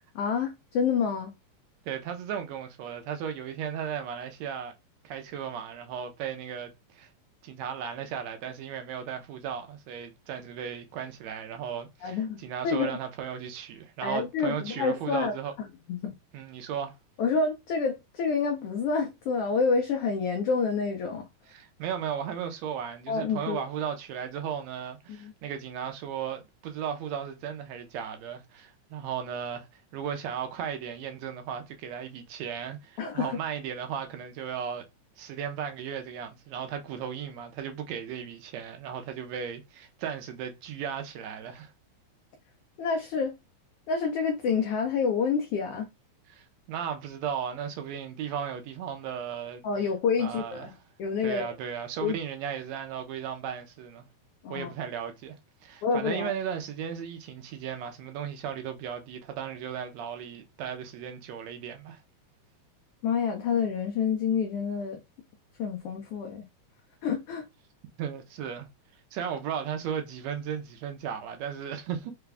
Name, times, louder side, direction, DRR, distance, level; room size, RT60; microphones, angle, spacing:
voice 1, 0.1-1.3 12.0-13.0 14.0-15.4 15.9-16.1 17.2-21.3 23.1-23.6 25.1-25.3 33.0-33.4 42.8-43.3 43.9-45.9 49.6-50.7 51.0-51.5 52.0-52.2 54.4-54.7 55.8-56.3 63.0-65.0 65.6-66.5 67.0-67.5, left 5 dB, 85° left, 1.3 m, -28 dB
voice 2, 1.9-4.7 5.0-7.1 7.4-15.5 16.3-17.0 21.5-34.9 35.2-41.7 46.3-49.6 50.2-50.7 51.2-54.0 54.5-55.4 55.6-62.0 68.0-68.7 69.1-72.1, right 8 dB, 80° right, 1.8 m, -36 dB
4.8 x 2.3 x 3.3 m
omnidirectional pair, 3.3 m